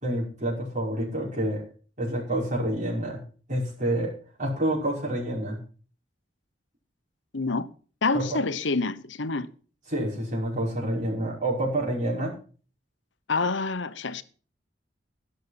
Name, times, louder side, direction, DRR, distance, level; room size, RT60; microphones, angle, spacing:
voice 1, 0.0-1.6 2.0-3.2 3.5-4.1 4.4-5.6 8.1-8.4 9.9-12.3, right 1 dB, 45° right, 5.7 m, -28 dB
voice 2, 7.3-7.7 8.0-9.5 13.3-14.2, left 3 dB, 80° left, 1.0 m, -27 dB
16.5 x 6.7 x 5.9 m
head